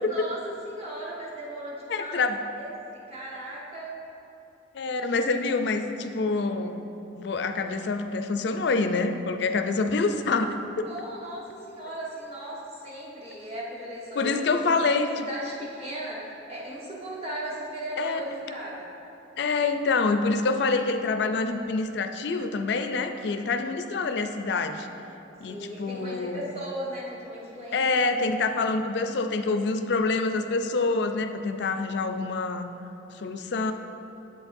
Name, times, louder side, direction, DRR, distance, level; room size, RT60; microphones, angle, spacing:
voice 1, 0.1-3.9 10.8-14.3 14.8-18.9 25.4-27.9, right 1 dB, 30° right, -6 dB, 1.3 m, -37 dB
voice 2, 1.9-2.4 4.7-6.8 7.2-10.9 14.2-15.3 18.0-18.6 19.4-24.9 25.4-26.5 27.7-32.7 33.2-33.7, left 3 dB, 60° left, 7 dB, 0.4 m, -26 dB
8.2 x 7.1 x 2.6 m, 3.0 s
head